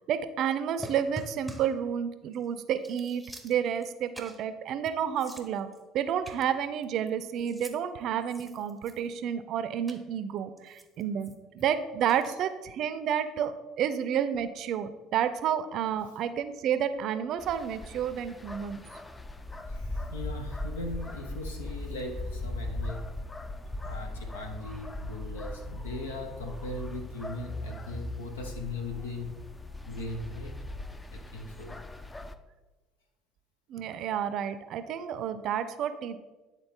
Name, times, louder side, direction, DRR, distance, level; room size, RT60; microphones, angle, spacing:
voice 1, 0.1-18.8 33.7-36.2, right 9 dB, 55° right, 12 dB, 0.4 m, -30 dB
sound 1, 0.8-1.8 2.3-2.5 2.8-3.9 4.1-4.5 4.9-5.0 5.2-5.8 6.2-7.1 7.4-7.8 8.2-9.2 9.9-10.0 10.6-11.7 12.1-12.3, right 1 dB, ahead, 0.8 m, -46 dB
sound 2, 17.4-32.4, left 2 dB, 20° left, 0.5 m, -39 dB
voice 2, 19.6-23.1 23.8-29.4 29.9-30.6 31.1-31.8, left 2 dB, 85° left, 4 dB, 0.9 m, -39 dB
9.8 x 3.7 x 3.6 m, 1.2 s
hypercardioid pair, 60°, 0 cm